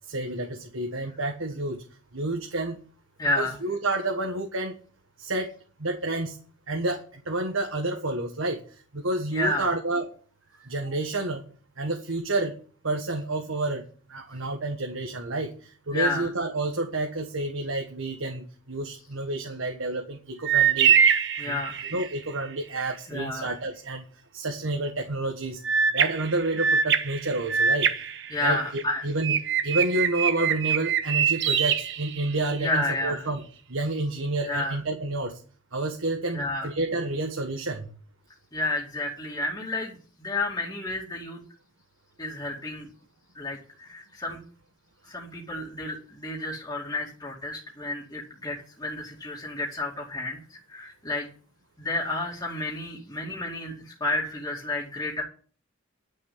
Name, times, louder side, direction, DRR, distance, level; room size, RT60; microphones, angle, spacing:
voice 1, 0.1-1.8 2.1-2.8 3.4-4.7 5.2-5.5 5.8-6.4 6.7-8.6 8.9-10.1 10.6-11.4 11.8-12.6 12.8-21.0 21.4-21.6 21.9-24.0 24.3-25.6 25.9-27.9 28.4-29.4 29.6-33.4 33.7-35.4 35.7-37.9, right 2 dB, 75° right, 3 dB, 1.6 m, -29 dB
voice 2, 3.2-3.6 9.3-9.7 15.9-16.3 21.4-21.8 23.1-23.5 28.3-29.1 32.6-33.3 34.5-34.8 36.3-36.7 38.5-41.4 42.2-42.9 43.3-44.4 45.1-51.3 51.8-55.2, left 2 dB, 20° left, -4 dB, 2.5 m, -31 dB
sound 1, 20.5-22.2 25.6-28.8 29.2-32.7, right 7 dB, 55° right, 1.2 m, -24 dB
11.5 x 6.5 x 8.7 m, 0.42 s
head